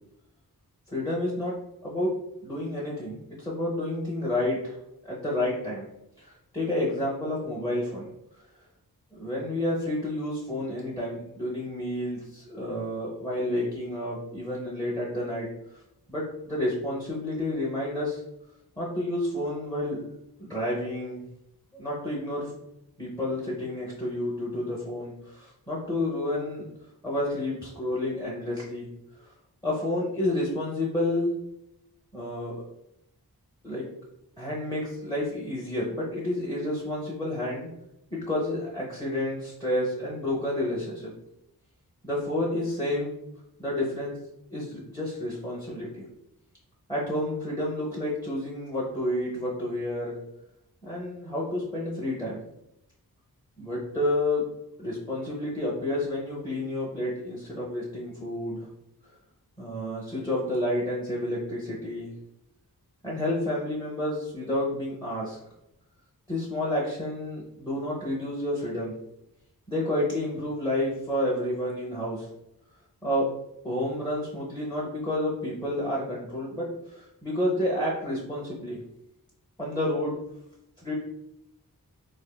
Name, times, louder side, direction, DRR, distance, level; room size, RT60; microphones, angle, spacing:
voice 1, 0.9-1.5 1.8-2.1 2.4-4.8 5.0-5.9 6.2-8.1 9.1-15.5 15.7-15.8 16.1-18.2 18.8-20.1 20.4-21.2 21.7-22.5 23.0-26.7 27.0-28.9 29.2-29.3 29.6-31.3 32.1-32.6 33.6-33.9 34.4-37.7 38.1-41.1 42.0-43.2 43.6-44.2 44.5-46.1 46.9-50.2 50.8-52.4 53.6-54.4 54.8-58.7 59.6-62.1 63.0-65.4 66.3-68.9 69.7-72.3 73.0-73.3 73.6-78.8 79.6-80.2 80.8-80.9, left 1 dB, 10° left, -6 dB, 0.6 m, -30 dB
3.4 x 2.6 x 2.2 m, 0.86 s
wide cardioid pair, 55°, 38 cm